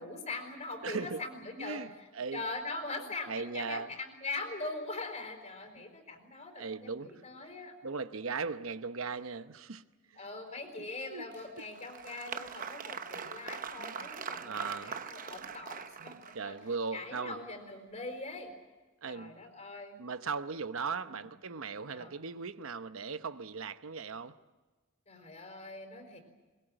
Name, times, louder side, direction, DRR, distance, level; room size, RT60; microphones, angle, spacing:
voice 1, 0.0-2.1 2.3-7.7 10.2-16.6 16.9-18.5 19.0-20.1 21.9-22.1 25.1-26.2, left 2 dB, 35° left, 4.3 m, -42 dB
voice 2, 0.8-1.2 1.6-2.4 2.9-3.9 6.6-7.2 7.8-9.8 10.8-11.3 13.2-13.4 13.8-14.0 14.4-15.0 16.0-17.4 19.0-19.4 20.0-24.4, right 4 dB, 75° right, 0.9 m, -38 dB
Applause, 11.3-16.6, right 6 dB, 40° right, 0.9 m, -42 dB
22.5 x 21.5 x 9.0 m
head